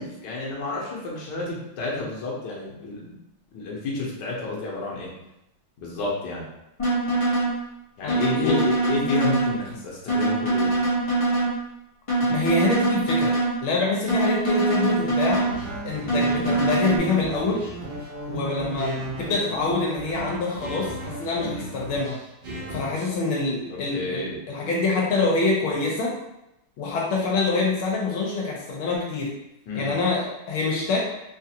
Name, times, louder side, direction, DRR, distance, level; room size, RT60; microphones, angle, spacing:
voice 1, 0.0-3.2 3.5-5.1 5.8-6.4 8.0-10.8 21.4-21.7 23.7-24.4 29.7-29.9, left 3 dB, 65° left, -4 dB, 1.4 m, -30 dB
sound 1, 6.8-7.5 8.1-9.5 10.1-11.5 12.1-13.5 14.1-15.5 16.1-17.0, right 2 dB, 40° left, 0.4 m, -23 dB
voice 2, 8.0-8.6 12.3-13.3 13.6-15.4 15.8-17.6 18.3-22.2 22.7-26.2 26.8-29.3 29.7-31.1, left 3 dB, 80° left, -3 dB, 1.6 m, -25 dB
sound 2, 15.3-23.1, right 2 dB, 70° right, 1.7 m, -35 dB
4.0 x 2.4 x 2.8 m, 0.87 s
omnidirectional pair, 2.2 m